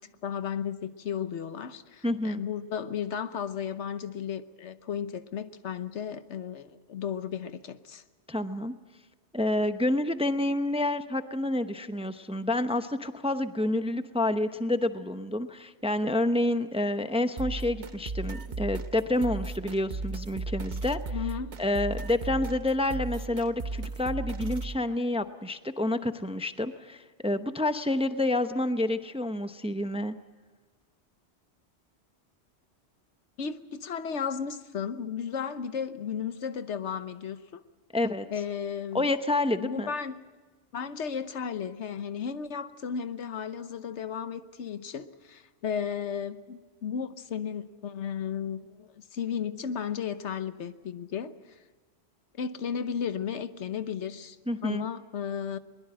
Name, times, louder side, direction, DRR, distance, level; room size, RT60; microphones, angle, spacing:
voice 1, 0.2-8.0 21.1-21.5 33.4-37.6 38.3-39.1 39.6-40.2 40.7-51.3 52.4-54.4 54.6-55.6, left 7 dB, 85° left, 11 dB, 1.3 m, -34 dB
voice 2, 2.0-2.4 8.3-8.7 9.3-21.0 21.6-30.1 37.9-38.3 38.9-39.9 54.5-54.8, left 1 dB, 5° right, 9 dB, 0.6 m, -28 dB
sound 1, 17.4-24.8, right 3 dB, 45° right, 0.9 m, -36 dB
22.0 x 21.0 x 7.7 m, 1.3 s
omnidirectional pair, 1.2 m